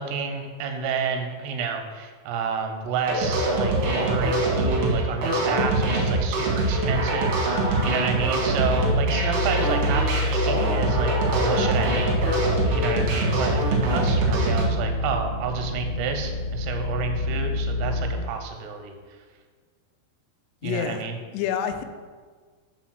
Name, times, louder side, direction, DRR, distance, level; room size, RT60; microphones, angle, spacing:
voice 1, 0.0-12.1 12.8-18.9 20.6-21.2, right 5 dB, 85° right, 5 dB, 2.8 m, -30 dB
sound 1, 3.0-14.6, right 2 dB, 65° right, 1.6 m, -24 dB
sound 2, 8.4-18.1, left 2 dB, 55° left, 2.2 m, -28 dB
voice 2, 20.6-21.1 21.3-21.8, left 8 dB, 90° left, 8 dB, 2.7 m, -27 dB
6.3 x 4.0 x 6.3 m, 1.5 s
omnidirectional pair, 4.7 m